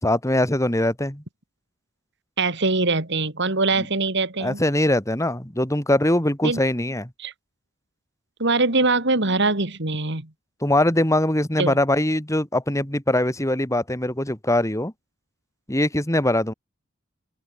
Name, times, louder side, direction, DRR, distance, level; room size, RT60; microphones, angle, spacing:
voice 1, 0.0-1.2 3.8-3.9 4.4-7.1 10.6-14.9 15.7-16.5, left 1 dB, 15° left, 3.0 m, -22 dB
voice 2, 2.4-4.6 6.4-6.6 7.2-7.3 8.4-10.3 11.6-11.8, right 3 dB, 55° right, 3.1 m, -22 dB
open air
head